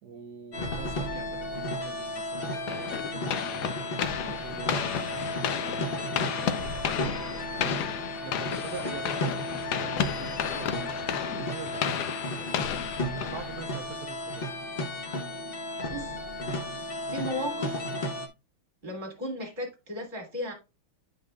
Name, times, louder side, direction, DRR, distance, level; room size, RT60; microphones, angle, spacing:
voice 1, 0.0-3.6 4.2-7.8 8.2-12.5 13.2-14.5, right 7 dB, 60° right, 4 dB, 1.2 m, -45 dB
sound 1, 0.5-18.3, left 1 dB, 50° left, 0.7 m, -34 dB
sound 2, 2.7-14.0, left 9 dB, 65° left, 1.1 m, -33 dB
voice 2, 15.9-16.2 17.1-18.0 18.8-20.5, equal, 25° right, 0 dB, 2.8 m, -35 dB
8.9 x 5.3 x 2.3 m, 0.27 s
omnidirectional pair, 2.3 m